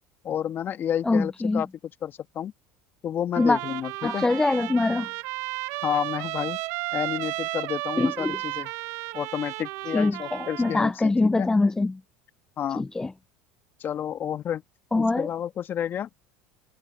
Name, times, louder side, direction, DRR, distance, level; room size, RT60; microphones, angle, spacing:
voice 1, 0.2-1.7 2.0-2.5 3.0-4.3 5.8-6.6 6.9-8.7 9.1-11.5 12.6-12.9 13.8-14.6 15.0-16.1, left 9 dB, 40° left, 1.9 m, -30 dB
voice 2, 1.0-1.6 3.4-3.6 4.0-5.1 8.0-8.4 9.9-12.0 12.7-13.1 14.9-15.3, left 3 dB, 10° left, 0.4 m, -23 dB
Trumpet, 3.3-10.9, right 21 dB, 65° right, 1.1 m, -33 dB
hypercardioid pair, 90°, 5 cm